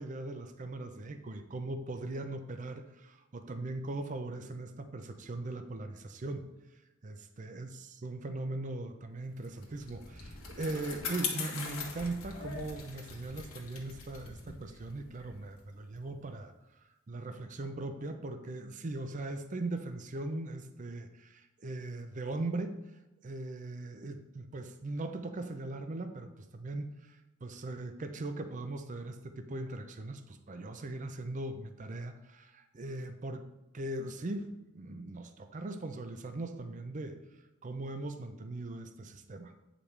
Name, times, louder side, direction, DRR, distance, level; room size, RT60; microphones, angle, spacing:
voice 1, 0.0-6.5 7.0-16.5 17.1-22.8 23.2-33.4 33.7-34.5 34.7-37.2 37.6-39.5, right 2 dB, 35° right, 8 dB, 0.5 m, -39 dB
Bicycle, 9.4-16.2, left 5 dB, 85° left, 1.4 m, -42 dB
8.7 x 5.0 x 3.2 m, 1.0 s
head